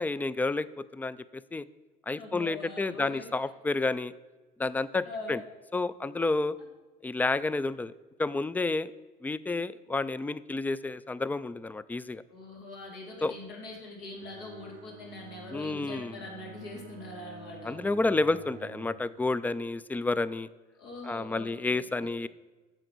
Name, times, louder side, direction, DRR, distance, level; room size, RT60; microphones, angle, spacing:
voice 1, 0.0-1.6 2.1-4.1 4.6-5.4 5.7-6.6 7.0-7.9 8.2-8.9 9.2-12.2 13.2-13.3 15.5-16.1 17.6-20.5 21.0-22.3, left 3 dB, 10° left, 17 dB, 0.3 m, -30 dB
voice 2, 2.1-3.3 5.0-5.4 12.3-17.7 20.7-22.1, left 2 dB, 85° left, -2 dB, 3.0 m, -43 dB
Bowed string instrument, 14.2-19.1, right 6 dB, 65° right, 0.8 m, -48 dB
9.0 x 6.8 x 6.0 m, 1.2 s
cardioid pair, 110°, 17 cm